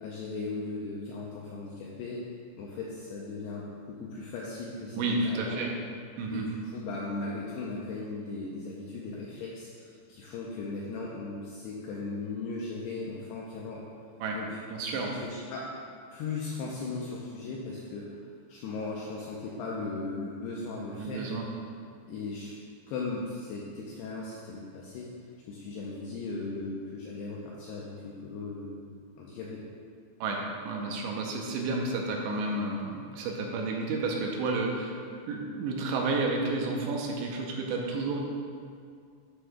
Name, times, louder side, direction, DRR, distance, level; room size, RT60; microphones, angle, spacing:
voice 1, 0.0-2.2 2.6-5.6 6.3-13.8 14.3-14.6 14.9-15.8 16.1-18.1 18.5-21.3 22.1-22.6 22.9-25.1 25.5-28.8 29.2-29.7, left 3 dB, 90° left, -4 dB, 2.3 m, -37 dB
voice 2, 5.0-5.7 6.2-6.5 14.2-14.4 14.7-15.1 21.0-21.4 30.2-35.0 35.3-38.2, right 3 dB, 80° right, 0 dB, 2.7 m, -31 dB
9.8 x 7.8 x 2.3 m, 2.2 s
omnidirectional pair, 5.5 m